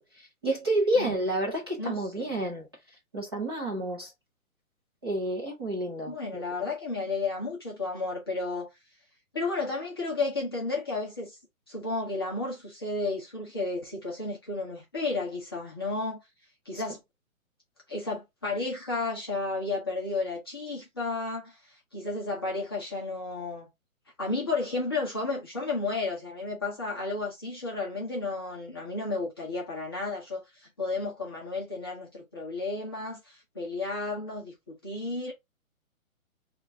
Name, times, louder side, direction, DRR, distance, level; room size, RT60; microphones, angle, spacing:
voice 1, 0.0-2.7 3.1-4.1 5.0-6.4, right 1 dB, 20° right, 0.7 m, -30 dB
voice 2, 1.8-2.4 6.1-8.7 9.3-11.4 11.7-16.2 16.6-17.0 17.9-23.7 24.2-35.3, left 3 dB, 20° left, 0.7 m, -32 dB
5.1 x 2.5 x 2.7 m
hypercardioid pair, 175°, 42 cm